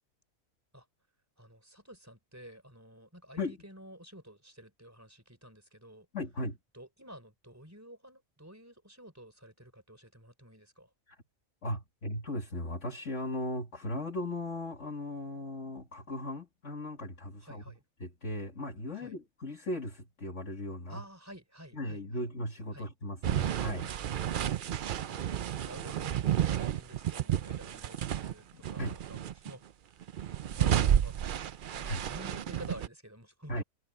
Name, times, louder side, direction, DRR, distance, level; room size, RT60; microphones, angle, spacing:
voice 1, 1.4-6.1 6.7-10.9 17.4-17.8 19.0-19.2 20.9-22.2 22.7-22.9 25.1-30.1 30.5-31.1 31.7-33.6, equal, 10° right, 4.0 m, -51 dB
voice 2, 6.1-6.6 11.6-17.6 18.0-21.0 21.7-23.9 28.5-28.9 31.8-32.0 33.5-33.6, left 1 dB, 55° left, 2.6 m, -37 dB
sound 1, 23.2-28.3 28.6-29.5 30.0-32.9, right 10 dB, 65° right, 0.5 m, -31 dB
omnidirectional pair, 1.5 m